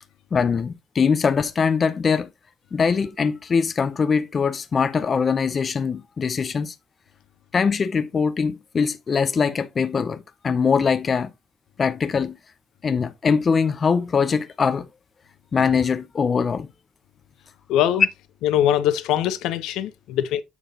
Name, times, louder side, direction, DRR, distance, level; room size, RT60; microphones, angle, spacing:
voice 1, 0.3-2.3 2.7-6.7 7.5-11.3 11.8-12.4 12.8-14.9 15.5-16.7, left 5 dB, 30° left, 0.6 m, -22 dB
voice 2, 17.7-18.1 18.4-20.4, left 11 dB, 90° left, 0.8 m, -22 dB
7.0 x 6.0 x 2.8 m
cardioid pair, 150°, 0 cm